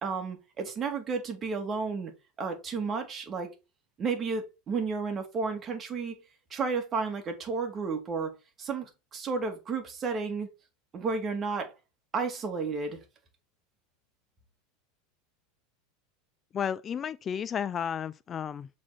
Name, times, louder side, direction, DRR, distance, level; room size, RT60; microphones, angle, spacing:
voice 1, 0.0-2.1 2.4-3.5 4.0-6.2 6.5-8.3 8.6-10.5 10.9-11.7 12.1-13.0, right 4 dB, 30° right, 2.5 m, -32 dB
voice 2, 16.5-18.7, left 8 dB, 30° left, 0.3 m, -32 dB
7.3 x 4.3 x 4.4 m
hypercardioid pair, 105°, 0 cm